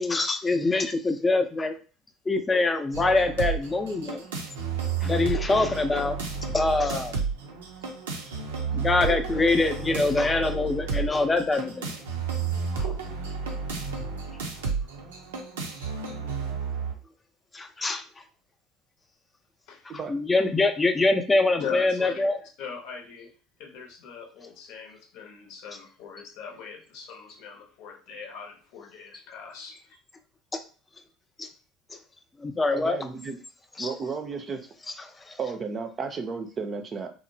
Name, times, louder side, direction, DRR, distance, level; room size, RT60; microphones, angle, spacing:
voice 1, 0.0-1.8 2.3-4.2 5.0-6.2 6.5-7.2 8.7-11.9 12.7-12.9 17.5-18.0 20.1-22.4 30.5-30.6 31.4-31.5 32.4-33.0 33.8-33.9 35.3-35.4, left 3 dB, 20° left, 6 dB, 0.5 m, -24 dB
sound 1, 2.9-16.9, right 5 dB, 85° right, 0.5 m, -32 dB
voice 2, 21.6-23.3 23.6-30.0, left 6 dB, 65° left, 2 dB, 0.7 m, -40 dB
voice 3, 32.7-33.4 33.8-34.6 35.4-37.1, right 5 dB, 35° right, 6 dB, 0.5 m, -33 dB
2.9 x 2.0 x 2.7 m, 0.37 s
hypercardioid pair, 75°, 0 cm